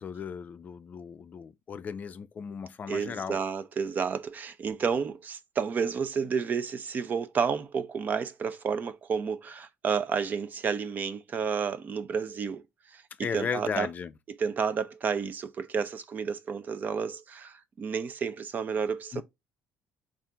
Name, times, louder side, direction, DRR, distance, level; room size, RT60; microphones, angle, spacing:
voice 1, 0.0-3.4 13.2-14.1 19.1-19.2, left 6 dB, 40° left, 0.4 m, -35 dB
voice 2, 2.9-12.6 12.9-13.0 13.3-13.9 14.4-19.2, right 6 dB, 45° right, 0.6 m, -31 dB
4.3 x 2.5 x 3.7 m
supercardioid pair, 85°, 4 cm